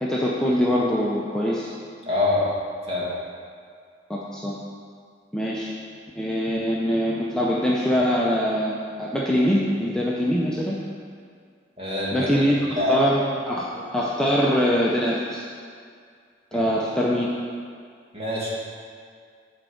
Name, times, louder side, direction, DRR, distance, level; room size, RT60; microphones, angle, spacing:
voice 1, 0.0-1.7 4.1-4.6 5.3-5.7 6.2-10.8 12.1-15.5 16.5-17.3, equal, 5° left, -5 dB, 0.6 m, -23 dB
voice 2, 2.0-2.5 2.9-3.1 11.8-13.1 13.7-13.8 16.5-16.7 18.1-18.5, left 2 dB, 30° right, -6 dB, 2.0 m, -25 dB
8.9 x 4.4 x 6.4 m, 2.2 s
head